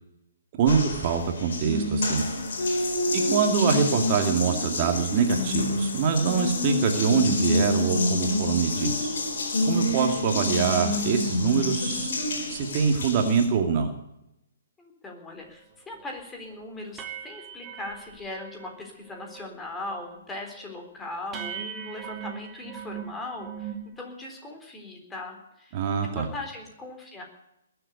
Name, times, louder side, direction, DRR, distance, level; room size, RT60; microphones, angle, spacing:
voice 1, 0.6-2.2 3.1-9.2 9.6-12.1 12.5-13.9 25.7-26.3, right 6 dB, 35° right, 4 dB, 2.3 m, -24 dB
Water tap faucet, 0.7-13.5, left 2 dB, 55° left, 4.5 m, -27 dB
voice 2, 14.8-25.8 26.1-27.2, left 2 dB, 10° left, 2 dB, 3.8 m, -39 dB
sound 1, 15.5-15.6 15.9-16.2 16.5-16.6 17.0-18.8 19.1-19.6 19.8-20.3 20.7-20.8 21.3-23.9, right 8 dB, 15° right, 2.4 m, -40 dB
21.0 x 8.0 x 8.2 m, 0.84 s
figure-of-eight pair, 130°, 0 cm